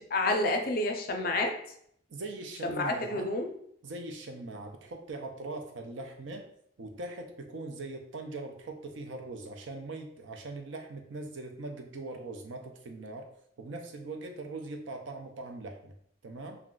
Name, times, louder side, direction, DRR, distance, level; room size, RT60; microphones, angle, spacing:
voice 1, 0.1-1.5 2.6-3.5, left 2 dB, 50° left, 4 dB, 0.4 m, -29 dB
voice 2, 2.1-3.3 3.8-6.5 6.8-13.3 13.6-15.9 16.2-16.6, right 2 dB, 75° right, 3 dB, 0.5 m, -41 dB
2.4 x 2.2 x 3.7 m, 0.68 s
head